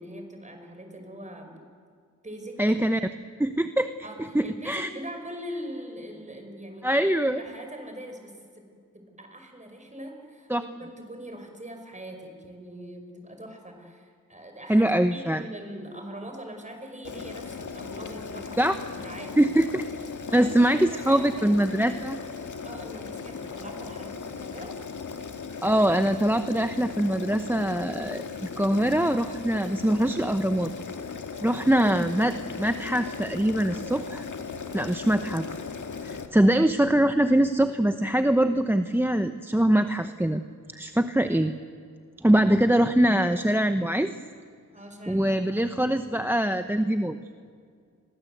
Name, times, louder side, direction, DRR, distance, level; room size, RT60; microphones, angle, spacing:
voice 1, 0.0-1.6 2.2-2.6 4.0-7.0 7.4-8.7 8.9-19.5 20.3-21.6 22.6-24.8 44.7-46.2, equal, 20° right, 4 dB, 5.4 m, -42 dB
voice 2, 2.6-3.1 3.4-3.9 4.3-4.9 6.8-7.4 10.5-10.6 14.7-15.4 18.6-18.7 19.4-19.8 20.3-22.2 25.6-30.7 31.4-34.2 34.7-35.5 36.0-40.4 40.7-41.5 42.2-44.1 45.1-47.2, right 1 dB, 5° right, 9 dB, 0.8 m, -23 dB
Boiling, 17.0-36.3, left 5 dB, 65° left, 2.0 m, -37 dB
30.0 x 23.0 x 8.0 m, 2.1 s
wide cardioid pair, 105°, 32 cm